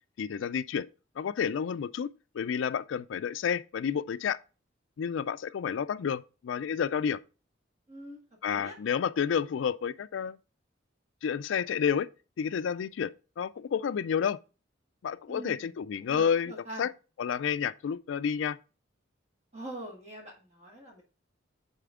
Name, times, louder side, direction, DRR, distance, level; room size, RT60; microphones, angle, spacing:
voice 1, 0.2-0.9 1.2-2.1 2.3-4.4 5.0-7.2 8.4-10.4 11.2-12.1 12.4-14.4 15.0-16.5 16.8-16.9 17.2-18.6, left 7 dB, 75° left, 0.3 m, -30 dB
voice 2, 7.9-8.2 8.5-8.8 15.3-15.7 16.0-16.9 19.5-21.0, right 1 dB, 35° right, 1.8 m, -43 dB
6.7 x 4.3 x 3.6 m
head